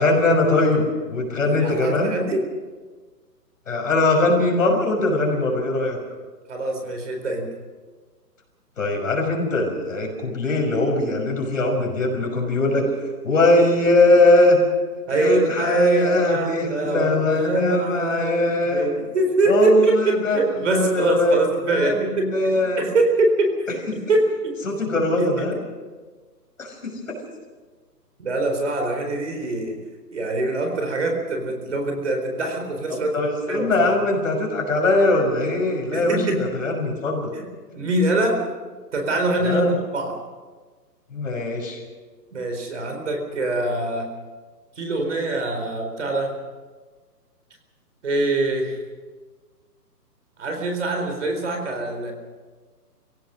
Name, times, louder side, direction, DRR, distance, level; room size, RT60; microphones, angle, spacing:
voice 1, 0.0-2.1 3.7-6.0 8.8-14.6 15.1-18.9 19.5-20.4 20.7-21.4 21.7-22.8 24.6-25.6 26.6-27.1 32.9-37.3 39.4-39.7 41.1-41.8, left 2 dB, 50° left, 1 dB, 6.0 m, -21 dB
voice 2, 1.5-2.5 6.5-7.5 15.1-22.3 22.8-23.5 24.1-24.5 25.2-25.5 28.2-29.8 30.1-33.1 33.5-33.9 35.9-36.4 37.3-37.5 37.7-38.4 38.9-40.2 42.3-44.1 44.8-46.3 48.0-48.8 50.4-52.1, right 2 dB, 45° right, 3 dB, 4.2 m, -23 dB
26.5 x 17.0 x 6.3 m, 1.4 s
hypercardioid pair, 175°, 49 cm